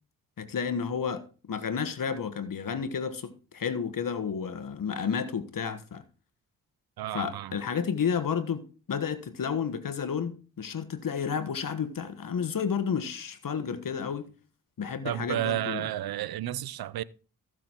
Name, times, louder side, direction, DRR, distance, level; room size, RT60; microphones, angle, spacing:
voice 1, 0.4-6.0 7.1-14.3 14.8-15.8, left 6 dB, 65° left, 1.4 m, -31 dB
voice 2, 7.0-7.6 15.0-17.0, right 12 dB, 85° right, 0.6 m, -32 dB
15.0 x 6.2 x 4.5 m
cardioid pair, 50°, 36 cm